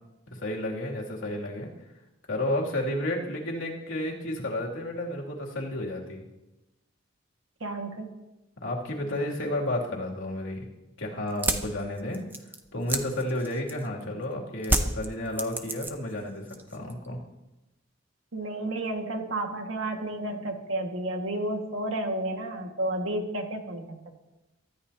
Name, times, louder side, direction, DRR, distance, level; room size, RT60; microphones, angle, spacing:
voice 1, 0.3-1.7 2.3-6.2 8.6-10.7 11.0-12.2 12.7-17.2, left 1 dB, 80° left, -2 dB, 2.8 m, -31 dB
voice 2, 7.6-8.2 18.3-24.1, right 1 dB, 85° right, 3 dB, 1.9 m, -31 dB
sound 1, 11.3-14.0 14.6-16.2 16.5-17.1, right 2 dB, 10° right, 0.7 m, -29 dB
23.5 x 13.0 x 2.9 m, 1.0 s
head